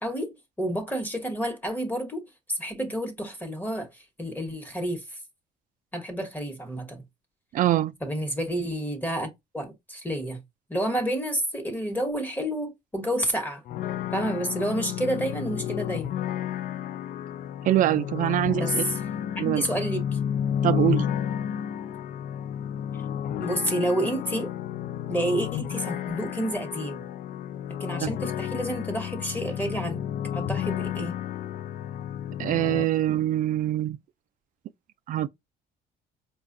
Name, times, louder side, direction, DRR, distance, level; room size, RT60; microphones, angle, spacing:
voice 1, 0.0-2.2 2.5-5.2 5.9-7.0 8.0-10.4 10.7-13.6 14.1-16.1 18.5-18.9 19.4-20.2 23.4-24.5 25.1-27.0 27.8-30.0 30.3-31.2, right 1 dB, 10° left, 1.1 m, -29 dB
voice 2, 7.5-7.9 17.7-18.8 19.4-19.6 20.6-21.1 28.0-28.1 32.4-34.0 35.1-35.3, right 13 dB, 50° right, 0.4 m, -24 dB
sound 1, 13.7-32.8, left 9 dB, 55° left, 0.4 m, -31 dB
4.9 x 2.3 x 2.6 m
cardioid pair, 110°, 17 cm